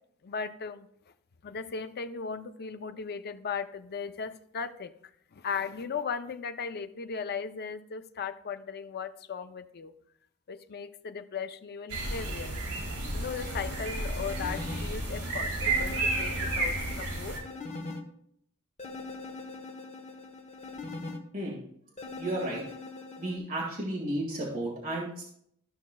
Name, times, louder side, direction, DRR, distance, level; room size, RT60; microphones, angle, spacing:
voice 1, 0.2-0.9 1.4-4.9 5.3-9.9 10.5-12.6 13.1-17.4, left 6 dB, 45° left, 10 dB, 0.5 m, -37 dB
sound 1, 11.9-17.4, right 2 dB, 80° right, 3.6 m, -32 dB
sound 2, 13.3-14.8 15.6-18.0 18.8-21.2 22.0-23.4, left 3 dB, 30° left, 1.1 m, -41 dB
voice 2, 22.2-22.6 23.2-25.2, right 1 dB, 40° right, -4 dB, 1.9 m, -33 dB
13.5 x 6.1 x 2.3 m, 0.69 s
head